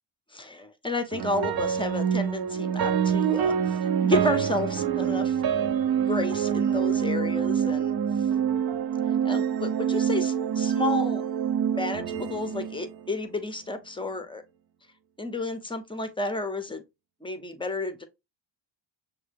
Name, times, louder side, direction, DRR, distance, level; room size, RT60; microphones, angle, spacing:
voice 1, 0.3-5.4 6.0-7.9 9.2-11.3 11.7-14.4 15.2-16.8 17.2-18.0, left 2 dB, 10° left, 0.6 m, -31 dB
sound 1, 1.1-13.4, right 8 dB, 50° right, 0.6 m, -26 dB
6.3 x 2.3 x 3.3 m
cardioid pair, 90°, 49 cm